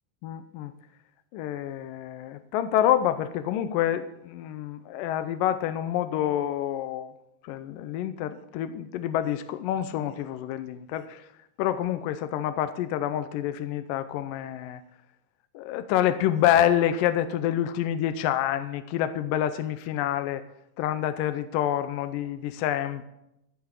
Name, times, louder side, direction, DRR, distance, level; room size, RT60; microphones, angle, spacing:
voice 1, 0.2-0.7 1.3-7.1 7.4-11.2 11.6-14.8 15.5-20.4 20.8-23.0, left 11 dB, 80° left, 10 dB, 2.2 m, -27 dB
15.0 x 5.9 x 7.4 m, 0.83 s
omnidirectional pair, 4.1 m